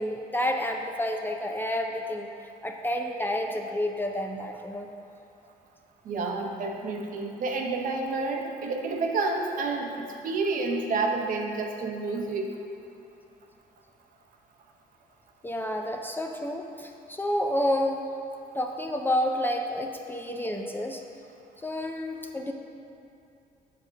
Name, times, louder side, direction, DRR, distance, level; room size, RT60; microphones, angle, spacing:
voice 1, 0.0-2.3 2.6-4.9 15.4-18.1 18.5-21.0 21.6-22.5, left 1 dB, 10° left, 3 dB, 0.4 m, -29 dB
voice 2, 6.1-12.5, right 3 dB, 55° right, 2 dB, 0.9 m, -29 dB
7.5 x 3.6 x 6.3 m, 2.6 s
cardioid pair, 110°, 17 cm